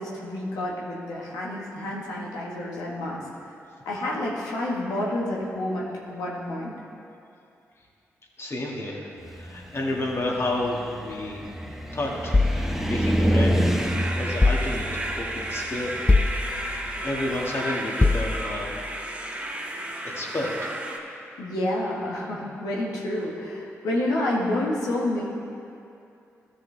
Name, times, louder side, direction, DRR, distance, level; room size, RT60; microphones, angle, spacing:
voice 1, 0.0-3.2 3.8-6.7 21.4-25.2, left 1 dB, 85° left, -4 dB, 1.4 m, -29 dB
voice 2, 8.4-11.4 11.9-13.5 14.1-14.9 15.1-15.9 16.5-18.7 20.0-20.7, left 1 dB, 45° left, -2 dB, 2.0 m, -31 dB
Car, 9.2-17.5, equal, 5° right, 1.2 m, -28 dB
sound 1, 12.3-13.7 14.4-15.2 16.1-17.0 18.0-18.8, left 3 dB, 20° left, 0.4 m, -24 dB
sound 2, 13.8-21.0, right 1 dB, 20° right, 1.3 m, -33 dB
13.5 x 6.3 x 3.3 m, 2.6 s
supercardioid pair, 40°, 6 cm